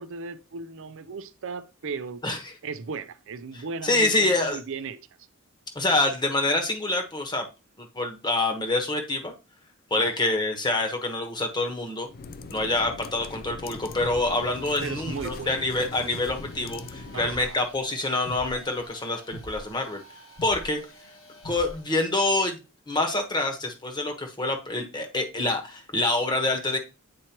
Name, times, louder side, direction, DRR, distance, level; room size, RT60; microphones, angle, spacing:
voice 1, 0.0-2.2 2.6-5.0 10.0-10.4 14.8-15.6 17.1-17.6, right 4 dB, 65° right, 0.5 m, -36 dB
voice 2, 2.2-2.5 3.8-4.6 5.7-7.5 7.8-9.3 9.9-12.1 12.5-20.0 20.4-20.8 21.4-22.6 22.9-26.8, left 2 dB, 20° left, 1.2 m, -26 dB
sound 1, 12.1-17.4, left 3 dB, 45° left, 0.4 m, -41 dB
sound 2, 13.8-22.0, equal, 70° left, 1.3 m, -44 dB
8.6 x 4.4 x 2.9 m
head